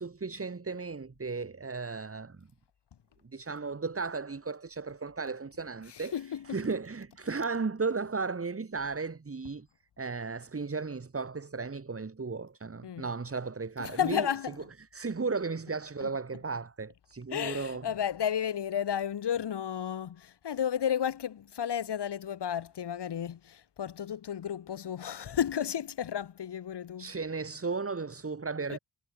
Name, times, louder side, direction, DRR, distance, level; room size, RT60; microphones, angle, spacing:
voice 1, 0.0-2.5 3.3-9.7 10.0-14.3 14.8-17.9 27.0-28.8, right 4 dB, 30° right, 6.9 m, -35 dB
voice 2, 5.9-6.6 12.8-13.1 13.8-14.6 16.0-16.1 17.3-27.1 28.7-28.8, left 9 dB, 65° left, 2.3 m, -33 dB
wide cardioid pair, 135°, 44 cm